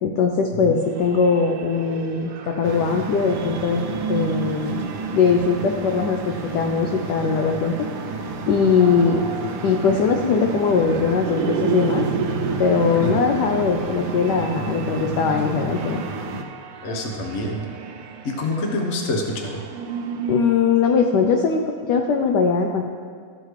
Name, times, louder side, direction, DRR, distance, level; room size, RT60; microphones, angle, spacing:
voice 1, 0.0-7.9 8.5-9.2 9.6-12.1 12.6-16.0 20.3-22.8, left 5 dB, 75° left, 3 dB, 1.0 m, -20 dB
sound 1, 0.8-20.6, right 7 dB, 80° right, 1.6 m, -33 dB
sound 2, 2.6-16.4, right 2 dB, 65° right, 1.1 m, -31 dB
voice 2, 16.8-17.6 18.2-19.6, left 1 dB, 45° left, 2 dB, 1.0 m, -26 dB
14.5 x 6.5 x 3.2 m, 2.1 s
omnidirectional pair, 2.4 m